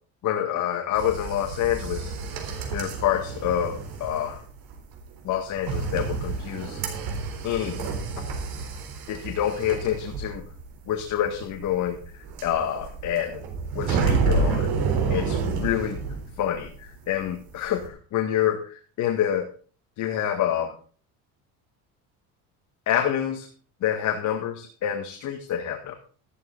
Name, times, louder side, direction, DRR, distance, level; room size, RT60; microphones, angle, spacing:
voice 1, 0.2-2.1 2.7-4.4 5.2-6.8 7.4-7.8 9.1-10.4 10.9-12.0 12.4-13.4 13.8-14.7 15.1-16.0 16.4-19.5 20.0-20.8 22.9-23.5 23.8-25.9, left 10 dB, 55° left, 4 dB, 1.9 m, -27 dB
sound 1, 0.9-16.9 17.1-17.9, right 4 dB, 80° right, 3.9 m, -29 dB
13.5 x 12.0 x 4.0 m, 0.40 s
cardioid pair, 130°, 36 cm